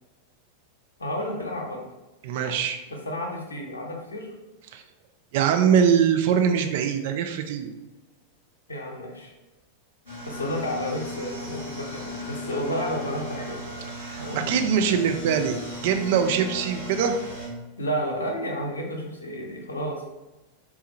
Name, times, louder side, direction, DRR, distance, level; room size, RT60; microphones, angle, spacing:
voice 1, 1.0-1.8 2.9-4.3 8.7-9.3 10.2-13.6 14.2-14.5 17.8-20.1, equal, 75° left, 1 dB, 0.6 m, -31 dB
voice 2, 2.2-2.8 4.7-4.8 5.3-7.7 14.0-17.1, right 7 dB, 50° right, 6 dB, 0.4 m, -23 dB
sound 1, 10.1-17.5, left 1 dB, 85° right, 1.4 m, -36 dB
4.2 x 2.3 x 2.8 m, 1.1 s
figure-of-eight pair, 90°, 0 cm